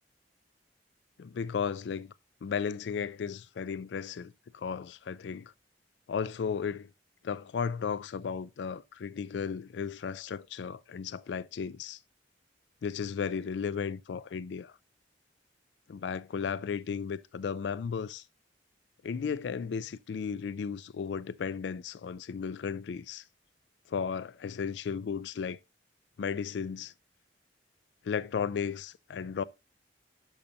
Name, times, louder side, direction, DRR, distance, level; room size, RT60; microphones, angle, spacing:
voice 1, 1.2-2.1 2.4-5.5 6.1-6.9 7.2-12.0 12.8-14.8 15.9-18.2 19.0-23.2 23.9-25.6 26.2-26.9 28.0-29.4, left 6 dB, 75° left, 0.4 m, -35 dB
12.0 x 5.6 x 2.7 m
head